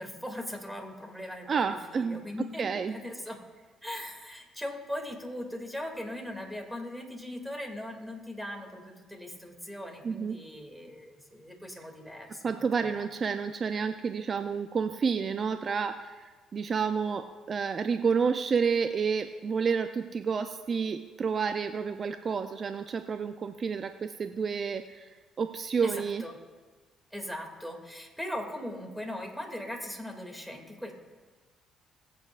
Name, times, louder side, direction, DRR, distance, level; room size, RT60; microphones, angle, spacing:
voice 1, 0.0-1.6 1.9-3.4 3.8-13.0 25.8-25.9 26.2-26.3 27.1-30.9, left 1 dB, ahead, 3 dB, 2.4 m, -39 dB
voice 2, 1.5-2.2 2.6-3.0 10.0-10.4 12.4-26.2, right 6 dB, 45° right, 8 dB, 0.5 m, -30 dB
22.0 x 8.4 x 2.5 m, 1.4 s
supercardioid pair, 65°, 0 cm